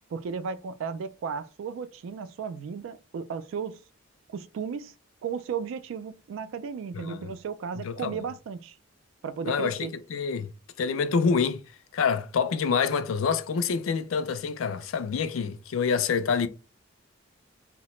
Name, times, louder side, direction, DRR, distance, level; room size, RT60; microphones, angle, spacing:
voice 1, 0.1-3.8 4.3-4.9 5.2-8.8 9.2-9.9, right 6 dB, 70° right, 0.3 m, -35 dB
voice 2, 6.9-7.3 7.8-8.2 9.4-10.5 10.8-11.6 11.9-16.5, left 5 dB, 80° left, 0.4 m, -27 dB
2.8 x 2.1 x 3.0 m
head